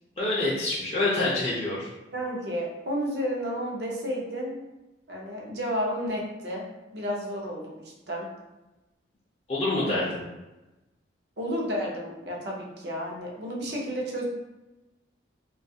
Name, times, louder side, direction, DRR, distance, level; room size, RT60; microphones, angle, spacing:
voice 1, 0.2-1.9 9.5-10.2, left 2 dB, 30° left, -7 dB, 0.4 m, -26 dB
voice 2, 2.1-4.6 5.1-6.6 6.9-8.3 9.8-10.1 11.4-14.2, equal, 60° right, -2 dB, 0.6 m, -31 dB
2.4 x 2.3 x 2.7 m, 1.0 s
head